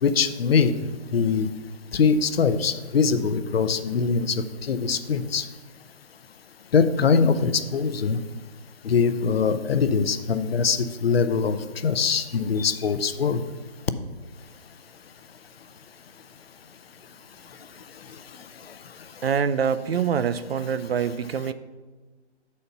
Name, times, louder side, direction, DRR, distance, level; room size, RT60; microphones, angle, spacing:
voice 1, 0.0-1.5 1.9-5.5 6.7-8.2 8.8-13.4 18.3-18.7, left 5 dB, 60° left, 11 dB, 0.5 m, -23 dB
voice 2, 19.2-21.5, right 7 dB, 60° right, 13 dB, 0.4 m, -25 dB
6.8 x 4.2 x 5.4 m, 1.3 s
hypercardioid pair, 155°, 34 cm